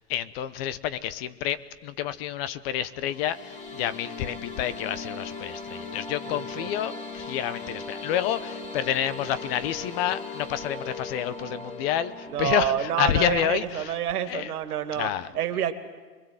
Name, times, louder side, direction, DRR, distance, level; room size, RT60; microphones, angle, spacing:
voice 1, 0.0-13.9 14.3-14.5 15.0-15.3, left 10 dB, 40° left, 15 dB, 0.9 m, -29 dB
sound 1, 2.9-13.1, left 3 dB, 15° left, 2.5 m, -38 dB
voice 2, 6.3-6.7 12.3-15.1 15.3-15.7, right 10 dB, 70° right, 8 dB, 2.4 m, -28 dB
25.5 x 22.0 x 7.8 m, 1.4 s
hypercardioid pair, 140°, 47 cm